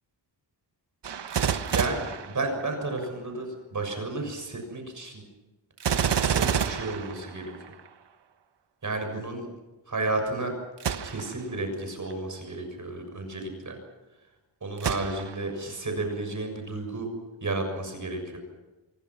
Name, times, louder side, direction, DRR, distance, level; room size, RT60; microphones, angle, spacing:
Gunshot gunfire, 1.0-3.0 5.8-7.9 10.8-11.4 12.1-12.2 14.8-15.6 16.1-16.2, right 7 dB, 65° right, 1.5 m, -29 dB
voice 1, 1.7-5.2 6.1-7.5 8.8-9.5 9.9-10.5 11.0-13.8 14.6-17.1 17.4-18.4, right 2 dB, 40° right, 4 dB, 6.8 m, -32 dB
27.5 x 23.0 x 6.0 m, 1.1 s
wide cardioid pair, 125°, 45 cm